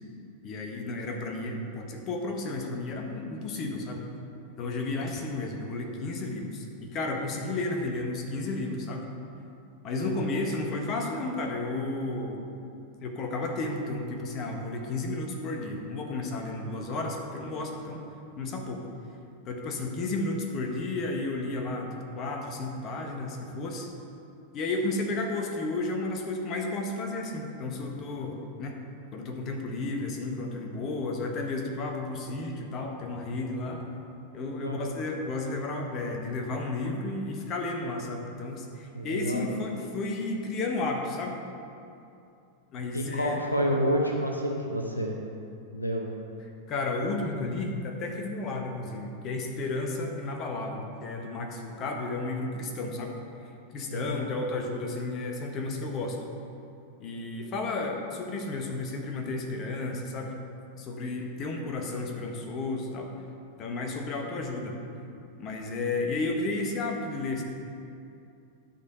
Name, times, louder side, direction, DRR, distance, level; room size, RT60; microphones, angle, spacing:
voice 1, 0.4-4.1 4.6-9.1 9.8-12.4 13.0-18.0 18.4-18.9 19.5-21.9 22.1-23.9 24.5-28.8 29.1-33.9 34.3-41.4 42.7-43.4 46.7-53.1 53.7-56.2 57.0-60.3 60.8-63.1 63.6-64.8 65.4-67.4, left 2 dB, 35° left, 2 dB, 1.2 m, -32 dB
voice 2, 10.0-10.3 34.6-34.9 38.9-39.5 42.9-45.2 45.7-46.1 53.9-54.2, equal, 85° left, 1 dB, 0.8 m, -29 dB
11.5 x 4.3 x 5.4 m, 2.6 s
figure-of-eight pair, 90°, 0 cm